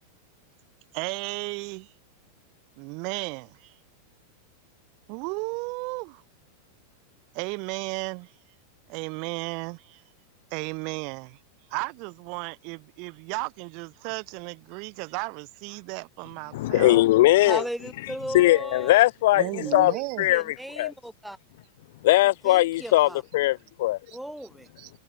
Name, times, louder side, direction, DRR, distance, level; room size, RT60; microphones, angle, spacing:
voice 1, 0.9-1.9 2.8-3.8 5.1-6.2 7.3-8.3 8.9-10.0 10.5-11.4 11.7-17.0 19.3-20.3 22.9-23.1 24.1-24.2 24.8-24.9, right 34 dB, 45° right, 3.9 m, -34 dB
voice 2, 16.5-17.6 18.3-19.9 20.2-20.4 20.8-20.9 22.0-24.0, left 17 dB, 55° left, 0.9 m, -20 dB
voice 3, 17.4-19.0 19.4-20.0 20.3-21.4 22.4-23.2 24.1-24.7, right 1 dB, ahead, 6.7 m, -36 dB
figure-of-eight pair, 90°, 0 cm